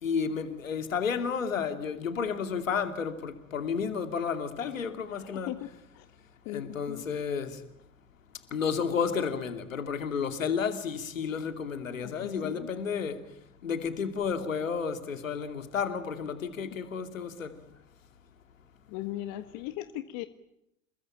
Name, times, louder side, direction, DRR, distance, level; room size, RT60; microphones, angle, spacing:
voice 1, 0.0-5.5 6.5-7.6 8.5-13.2 13.6-17.5, left 6 dB, 80° left, 2.7 m, -31 dB
voice 2, 4.8-6.1 6.4-7.0 11.9-12.7 16.6-16.8 18.9-20.3, left 15 dB, 50° left, 1.5 m, -39 dB
28.0 x 21.5 x 8.9 m
figure-of-eight pair, 80°, 39 cm